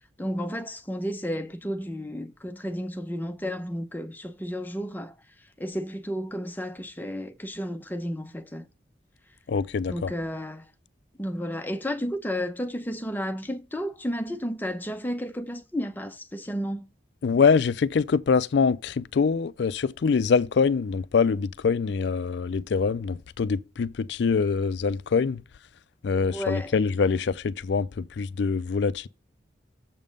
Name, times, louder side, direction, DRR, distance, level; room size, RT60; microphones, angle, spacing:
voice 1, 0.2-5.1 5.6-8.7 9.9-10.7 11.2-16.9 26.3-26.7, equal, 10° left, 0.7 m, -32 dB
voice 2, 9.5-10.1 17.2-25.4 26.0-29.1, left 5 dB, 65° left, 0.4 m, -24 dB
7.3 x 5.5 x 5.1 m
head